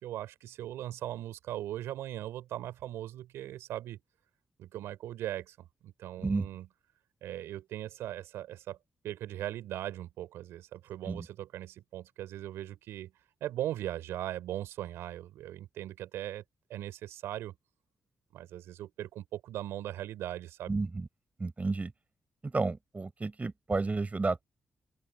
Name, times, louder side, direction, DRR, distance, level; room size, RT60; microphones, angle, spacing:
voice 1, 0.0-4.0 4.6-6.7 7.2-8.8 9.0-13.1 13.4-16.4 16.7-17.6 18.3-20.7, right 13 dB, 85° right, 5.4 m, -39 dB
voice 2, 20.7-21.1 21.4-21.9 22.4-24.4, right 3 dB, 35° right, 4.3 m, -31 dB
open air
supercardioid pair, 45°, 4 cm